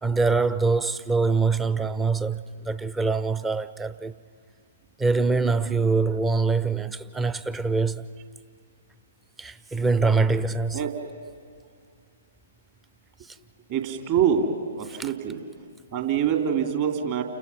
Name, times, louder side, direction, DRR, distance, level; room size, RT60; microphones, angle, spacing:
voice 1, 0.0-4.2 5.0-8.1 9.4-10.8 13.3-13.4 15.0-15.1, right 4 dB, 10° right, 0.6 m, -24 dB
voice 2, 13.7-15.4 15.9-17.2, right 8 dB, 40° right, 2.8 m, -25 dB
29.5 x 28.5 x 5.8 m
figure-of-eight pair, 120°, 0 cm